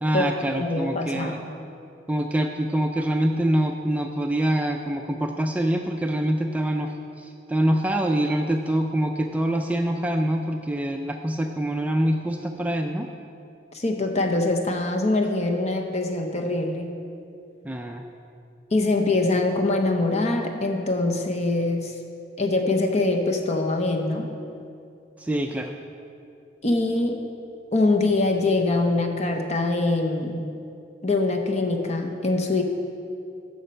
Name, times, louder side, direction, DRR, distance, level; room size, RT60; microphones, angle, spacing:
voice 1, 0.0-1.4 2.1-6.9 7.5-13.1 17.7-18.0 25.2-25.7, right 1 dB, 10° right, 3 dB, 0.3 m, -25 dB
voice 2, 0.6-1.4 13.7-16.9 18.7-21.9 22.4-24.3 26.6-27.3 27.7-30.5 31.0-32.6, left 2 dB, 35° left, 4 dB, 0.8 m, -23 dB
9.2 x 6.5 x 5.6 m, 2.6 s
head